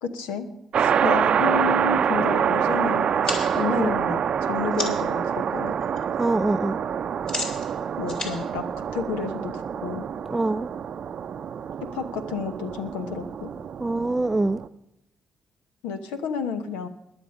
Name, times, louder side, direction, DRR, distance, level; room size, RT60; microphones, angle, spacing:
voice 1, 0.0-0.5 0.7-5.8 8.0-10.1 11.8-13.5 15.8-16.9, left 5 dB, 80° left, 1.1 m, -31 dB
sound 1, 0.7-14.7, right 8 dB, 55° right, 0.6 m, -26 dB
sound 2, 3.0-5.2 5.6-6.0 6.3-9.5, left 2 dB, 40° left, 3.2 m, -35 dB
voice 2, 6.2-6.8 10.3-10.7 13.8-14.6, right 2 dB, 15° right, 0.5 m, -24 dB
21.0 x 7.1 x 5.4 m
hypercardioid pair, 45°, 2 cm